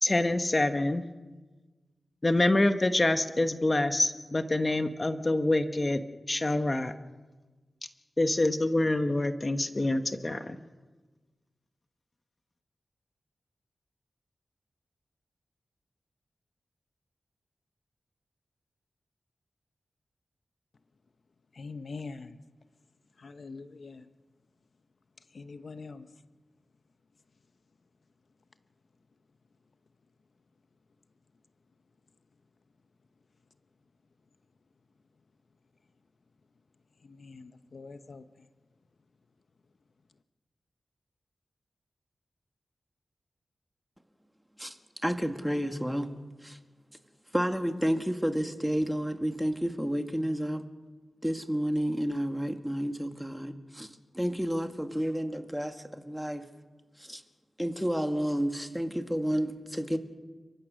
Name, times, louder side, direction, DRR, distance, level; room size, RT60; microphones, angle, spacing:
voice 1, 0.0-1.0 2.2-6.0 6.3-6.9 8.2-10.6, left 2 dB, 35° left, 8 dB, 1.1 m, -26 dB
voice 2, 21.5-22.4 23.2-24.1 25.2-26.1 37.0-38.5, left 4 dB, 65° left, 10 dB, 0.9 m, -44 dB
voice 3, 45.0-46.1 46.4-46.6 47.3-50.6 51.2-53.9 54.1-56.4 57.0-57.2 57.6-60.0, equal, 5° right, 6 dB, 1.8 m, -30 dB
29.5 x 15.0 x 6.4 m, 1.3 s
cardioid pair, 55°, 0 cm